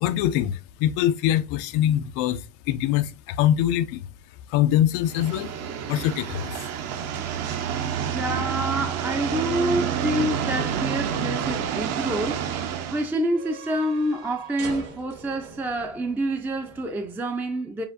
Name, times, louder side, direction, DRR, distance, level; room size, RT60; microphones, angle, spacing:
voice 1, 0.0-4.1 4.5-5.5 5.9-6.6, left 12 dB, 90° left, 0.5 m, -23 dB
sound 1, 5.1-13.1, right 8 dB, 55° right, 0.8 m, -28 dB
voice 2, 8.1-17.8, right 1 dB, 5° right, 0.3 m, -27 dB
sound 2, 11.6-17.2, right 4 dB, 80° right, 2.4 m, -45 dB
6.9 x 2.5 x 2.5 m
cardioid pair, 150°, 30 cm